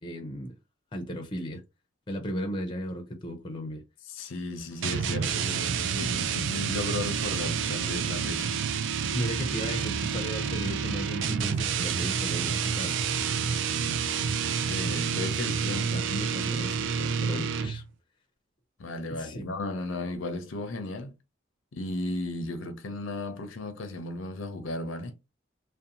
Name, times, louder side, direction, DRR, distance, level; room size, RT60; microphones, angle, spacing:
voice 1, 0.0-0.6 0.9-1.6 2.1-3.8 9.1-12.9 15.9-17.8 19.1-19.4, equal, 25° left, 0.5 m, -35 dB
voice 2, 4.1-8.6 14.7-16.1 18.8-21.1 21.7-25.1, left 2 dB, 80° left, 0.5 m, -35 dB
sound 1, 4.8-17.9, right 6 dB, 70° right, 0.4 m, -29 dB
2.5 x 2.1 x 2.8 m
head